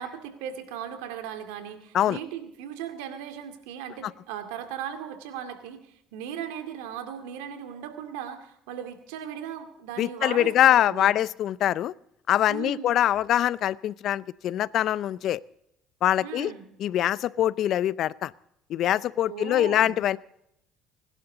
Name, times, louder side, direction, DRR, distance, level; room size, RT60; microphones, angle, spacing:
voice 1, 0.0-11.1 12.5-12.9 16.2-16.7 19.3-20.0, right 9 dB, 85° right, 7 dB, 2.2 m, -37 dB
voice 2, 10.0-11.9 12.3-15.4 16.0-16.5 16.8-18.3 18.7-20.2, left 12 dB, 60° left, 20 dB, 0.5 m, -23 dB
25.5 x 11.5 x 3.9 m, 0.79 s
supercardioid pair, 85°, 0 cm